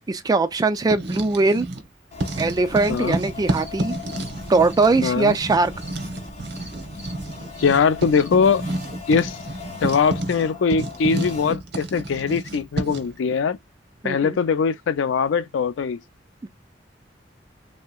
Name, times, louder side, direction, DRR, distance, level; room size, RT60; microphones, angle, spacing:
voice 1, 0.1-1.7 2.4-3.9 4.5-5.7 14.0-14.4 16.4-16.5, right 3 dB, 20° right, 0.3 m, -21 dB
Writing, 0.7-1.9 2.2-13.1, right 1 dB, 60° right, 0.8 m, -30 dB
sound 1, 2.1-11.5, left 3 dB, 35° left, 1.0 m, -39 dB
voice 2, 2.9-3.2 5.0-5.3 7.6-8.6 9.1-9.4 9.8-13.6 14.0-16.0, left 5 dB, 80° left, 0.4 m, -21 dB
sound 2, 2.9-3.1 3.6-3.7 4.0-4.3 4.7-4.8 5.3-5.4 5.8-6.0 6.5-6.7 7.0-7.1 7.5-7.7 8.1-8.3, right 1 dB, 15° left, 1.2 m, -44 dB
3.2 x 2.8 x 2.3 m
head